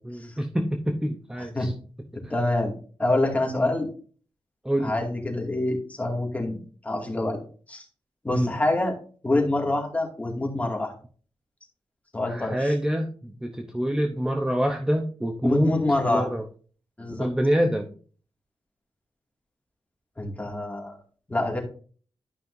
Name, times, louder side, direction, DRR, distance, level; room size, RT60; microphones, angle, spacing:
voice 1, 0.0-1.7 3.5-3.7 4.6-5.0 8.3-8.5 12.3-15.8 16.1-16.4 17.2-17.9, equal, 5° right, 4 dB, 0.8 m, -26 dB
voice 2, 2.3-2.7 3.0-3.9 4.8-6.6 6.8-7.4 7.7-7.8 8.2-8.9 9.2-10.9 12.1-12.7 15.4-16.3 17.0-17.3 20.2-21.0 21.3-21.6, left 2 dB, 15° left, 0 dB, 2.3 m, -26 dB
12.0 x 5.6 x 2.7 m, 0.40 s
wide cardioid pair, 125°, 9 cm